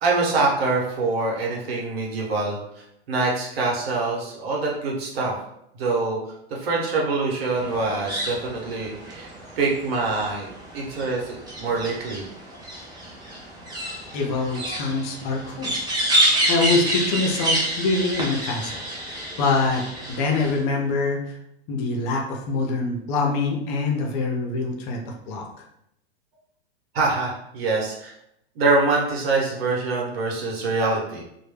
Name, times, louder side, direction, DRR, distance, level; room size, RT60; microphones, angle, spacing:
voice 1, 0.0-5.3 5.8-6.2 6.5-12.2 26.9-28.1 28.5-31.2, right 3 dB, 65° right, -2 dB, 1.0 m, -25 dB
sound 1, 7.6-20.6, right 1 dB, 15° right, 0.6 m, -28 dB
voice 2, 14.1-15.7 16.5-21.4 21.7-25.5, left 3 dB, 45° left, 1 dB, 0.6 m, -25 dB
2.1 x 2.1 x 3.2 m, 0.77 s
hypercardioid pair, 120°, 33 cm